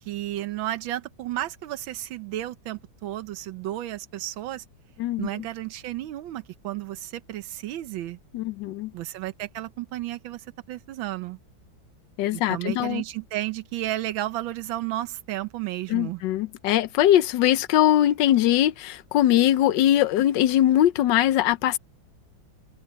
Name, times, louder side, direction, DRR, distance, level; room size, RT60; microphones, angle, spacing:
voice 1, 0.0-4.6 5.2-8.2 8.9-11.4 12.3-16.2, right 14 dB, 90° right, 1.5 m, -32 dB
voice 2, 5.0-5.4 8.3-8.9 12.2-13.0 15.9-21.8, left 12 dB, 75° left, 1.4 m, -21 dB
open air
omnidirectional pair, 2.1 m